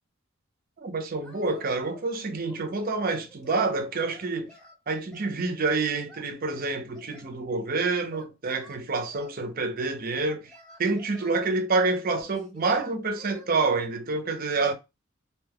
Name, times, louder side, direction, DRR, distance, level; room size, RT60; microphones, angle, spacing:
voice 1, 0.8-4.5 4.9-10.5 10.8-14.7, right 3 dB, 45° right, 0.6 m, -27 dB
Singing, 1.2-2.1 2.4-3.7 4.1-5.4 6.1-7.4 8.1-9.3 10.1-11.4 12.2-13.5, equal, 5° left, 0.8 m, -51 dB
2.8 x 2.2 x 3.4 m
head